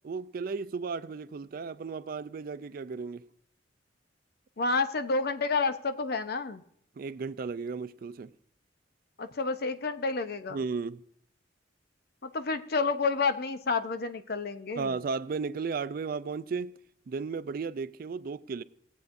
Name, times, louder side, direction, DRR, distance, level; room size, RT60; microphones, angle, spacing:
voice 1, 0.0-3.3 7.0-8.3 10.5-11.0 14.8-16.8 17.1-18.6, right 5 dB, 50° right, 0.4 m, -34 dB
voice 2, 4.6-6.6 9.2-10.6 12.2-15.0, left 4 dB, 55° left, 0.6 m, -29 dB
18.0 x 8.1 x 2.6 m
head